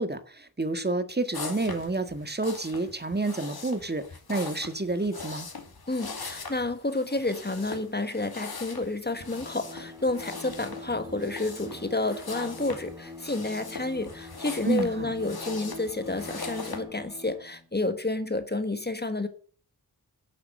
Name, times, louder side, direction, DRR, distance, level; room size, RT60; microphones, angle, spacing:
voice 1, 0.0-4.0 4.3-5.5 14.6-15.1, right 2 dB, 25° right, 1.7 m, -29 dB
sound 1, 1.3-16.8, left 4 dB, 80° left, 2.6 m, -41 dB
voice 2, 5.9-19.3, left 2 dB, 25° left, 1.6 m, -30 dB
Bowed string instrument, 9.1-17.7, left 2 dB, 10° right, 2.0 m, -45 dB
11.5 x 8.5 x 6.6 m
wide cardioid pair, 70°, 37 cm